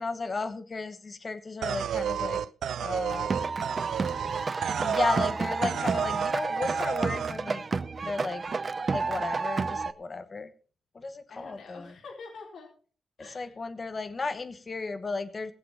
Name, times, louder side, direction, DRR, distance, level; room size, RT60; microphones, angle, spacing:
voice 1, 0.0-2.4 2.8-3.3 4.4-7.6 8.0-8.4 8.8-10.5 10.9-11.9 13.2-15.5, left 3 dB, 30° left, 10 dB, 1.1 m, -34 dB
sound 1, 1.6-5.4 5.6-6.3 6.6-7.3, right 9 dB, 90° right, 0.5 m, -31 dB
sound 2, 3.1-9.9, right 4 dB, 35° right, 0.6 m, -31 dB
voice 2, 3.2-3.7 11.3-12.7 13.2-13.5, left 4 dB, 60° left, -1 dB, 4.2 m, -47 dB
19.5 x 7.7 x 4.3 m, 0.40 s
wide cardioid pair, 135°, 0 cm